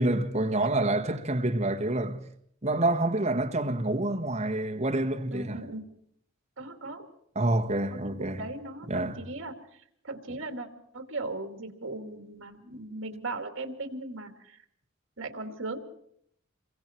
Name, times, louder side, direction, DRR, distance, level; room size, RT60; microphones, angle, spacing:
voice 1, 0.0-2.2 2.6-5.6 7.3-8.4 8.9-9.2, right 2 dB, 35° right, 1.5 m, -27 dB
voice 2, 0.5-1.2 5.3-5.8 6.6-7.1 7.9-10.7 10.9-14.6 15.2-15.8, right 2 dB, 65° right, 2.6 m, -38 dB
27.5 x 23.0 x 4.6 m
head